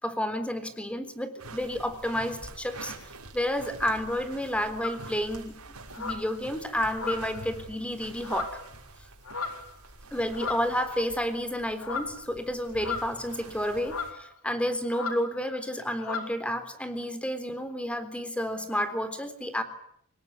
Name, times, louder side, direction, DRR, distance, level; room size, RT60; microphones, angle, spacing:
voice 1, 0.0-2.9 3.3-5.6 6.0-8.6 10.1-19.6, equal, 5° left, 10 dB, 3.7 m, -30 dB
sound 1, 1.4-14.1, right 2 dB, 85° right, 6.1 m, -46 dB
sound 2, 4.8-5.1 5.9-6.3 6.9-7.5 8.2-8.7 9.2-9.7 10.3-10.8 11.8-12.2 12.8-13.3 13.8-14.2 14.9-15.2 15.5-15.7 16.0-16.3, left 4 dB, 70° left, 4.3 m, -35 dB
26.0 x 21.5 x 9.5 m, 0.69 s
head